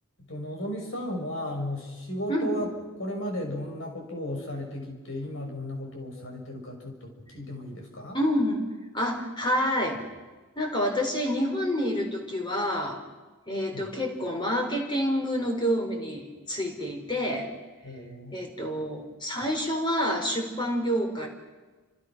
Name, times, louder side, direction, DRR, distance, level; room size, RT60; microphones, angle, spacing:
voice 1, 0.3-2.7 3.0-8.2 13.7-13.9 17.8-18.4, equal, 65° left, 2 dB, 6.4 m, -35 dB
voice 2, 8.1-8.6 8.9-10.0 10.6-13.0 13.5-17.5 18.3-21.3, equal, 20° left, 3 dB, 4.4 m, -28 dB
30.0 x 27.0 x 6.1 m, 1.3 s
head